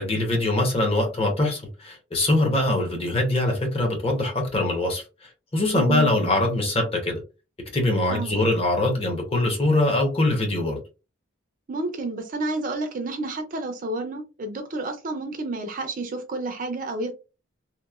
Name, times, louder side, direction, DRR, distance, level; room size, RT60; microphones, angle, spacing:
voice 1, 0.0-5.0 5.5-7.2 7.7-10.8, left 1 dB, 30° left, 0.7 m, -23 dB
voice 2, 5.7-6.1 8.1-8.4 11.7-17.1, right 2 dB, 40° right, 0.4 m, -30 dB
2.9 x 2.0 x 2.3 m
head